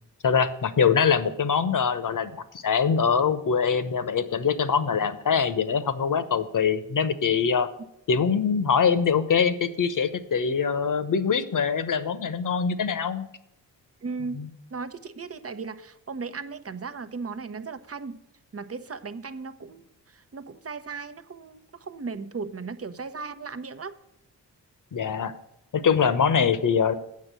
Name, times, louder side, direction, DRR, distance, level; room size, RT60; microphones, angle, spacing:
voice 1, 0.2-7.7 8.1-13.3 14.3-14.5 24.9-25.3 25.7-26.9, left 6 dB, 50° left, 11 dB, 1.1 m, -23 dB
voice 2, 14.0-18.2 18.5-24.0, right 4 dB, 35° right, 11 dB, 0.9 m, -37 dB
8.5 x 6.1 x 7.6 m, 0.78 s
supercardioid pair, 45°, 42 cm